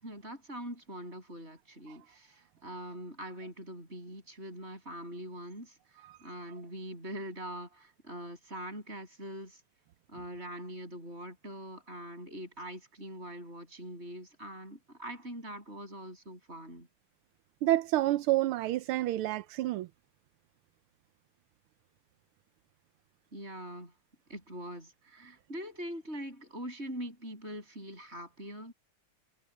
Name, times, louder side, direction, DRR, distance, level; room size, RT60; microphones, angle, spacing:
voice 1, 0.0-9.6 10.1-16.9 23.3-23.9 24.3-28.7, equal, 30° right, 7.0 m, -43 dB
voice 2, 17.6-19.9, right 15 dB, 85° right, 1.6 m, -28 dB
omnidirectional pair, 2.4 m